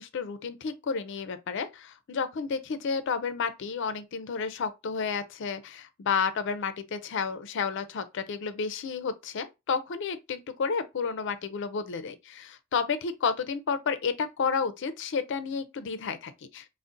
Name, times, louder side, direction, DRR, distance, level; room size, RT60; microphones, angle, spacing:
voice 1, 0.0-16.7, left 5 dB, 55° left, 0.4 m, -31 dB
2.5 x 2.0 x 3.7 m
head